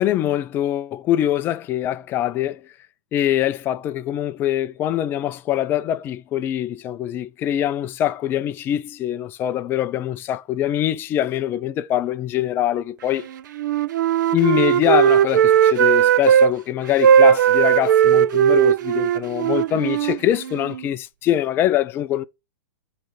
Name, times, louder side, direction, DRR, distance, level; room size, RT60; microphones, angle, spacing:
voice 1, 0.0-2.6 3.1-13.3 14.3-22.2, left 12 dB, 20° left, 0.4 m, -23 dB
Wind instrument woodwind instrument, 13.5-16.5 17.0-20.8, right 9 dB, 65° right, 0.6 m, -17 dB
9.1 x 3.2 x 6.4 m
hypercardioid pair, 150°, 11 cm